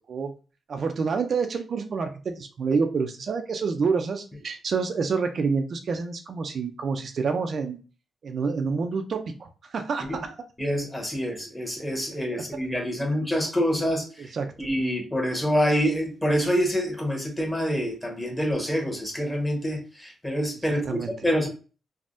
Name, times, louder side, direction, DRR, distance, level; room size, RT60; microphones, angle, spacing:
voice 1, 0.7-7.8 8.2-10.4 12.3-12.4 13.0-13.1 14.2-14.5 20.8-21.1, right 5 dB, 60° right, 0.4 m, -28 dB
voice 2, 10.6-14.3 14.6-21.5, equal, 10° left, 1.1 m, -26 dB
3.4 x 2.1 x 2.5 m
cardioid pair, 85°, 0 cm